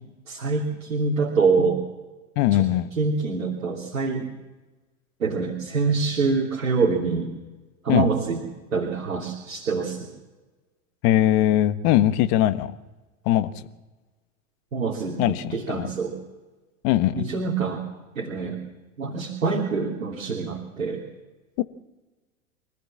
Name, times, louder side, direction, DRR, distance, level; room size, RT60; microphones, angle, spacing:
voice 1, 0.3-1.8 3.0-4.3 5.2-7.3 7.8-8.4 8.7-10.1 14.7-16.1 17.1-17.8 18.1-18.6 19.0-21.0, right 4 dB, 80° right, -1 dB, 3.1 m, -25 dB
voice 2, 2.4-2.9 7.9-8.1 11.0-12.7 13.2-13.5 15.2-15.9 16.8-17.3 21.6-21.7, left 13 dB, 50° left, 12 dB, 1.4 m, -20 dB
25.5 x 15.0 x 7.4 m, 1.2 s
hypercardioid pair, 95°, 40 cm